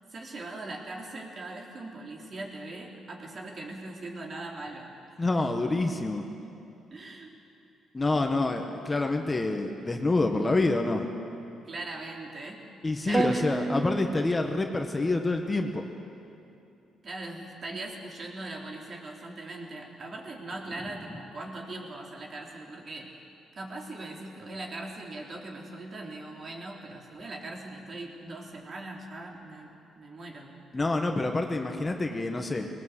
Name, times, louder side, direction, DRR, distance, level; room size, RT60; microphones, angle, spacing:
voice 1, 0.1-4.9 6.3-6.6 6.9-7.3 11.6-12.7 13.0-13.7 17.0-23.1 23.5-31.1, right 2 dB, 45° right, 0 dB, 3.5 m, -40 dB
voice 2, 5.2-6.2 7.9-11.1 12.8-15.8 30.7-32.7, left 2 dB, 20° left, 4 dB, 1.6 m, -27 dB
sound 1, 13.1-15.1, right 3 dB, 25° right, 0.6 m, -31 dB
20.0 x 18.5 x 8.2 m, 2.7 s
cardioid pair, 90°, 0 cm